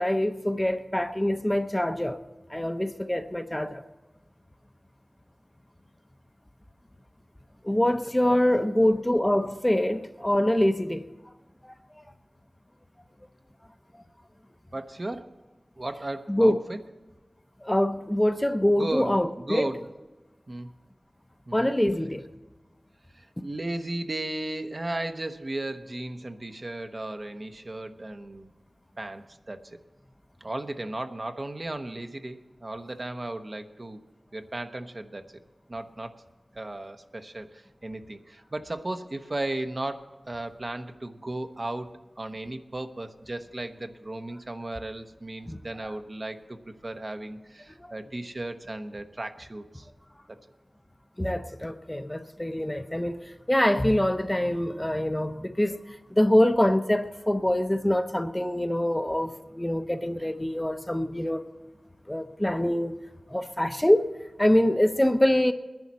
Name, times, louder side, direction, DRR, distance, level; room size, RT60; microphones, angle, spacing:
voice 1, 0.0-2.2 2.5-3.8 7.6-11.1 11.6-12.0 16.3-16.6 17.6-19.7 21.5-22.2 45.5-45.9 47.8-47.9 51.2-61.5 62.1-62.9 63.3-64.1 64.4-65.5, left 1 dB, 15° left, 0.8 m, -25 dB
voice 2, 14.7-15.3 15.8-16.8 18.8-19.9 20.5-20.7 21.5-21.7 23.1-28.5 29.0-29.8 30.4-34.0 34.3-35.4 35.7-36.2 36.5-49.9, right 2 dB, 50° right, 1.0 m, -35 dB
21.0 x 10.5 x 4.2 m
wide cardioid pair, 45°, 0 cm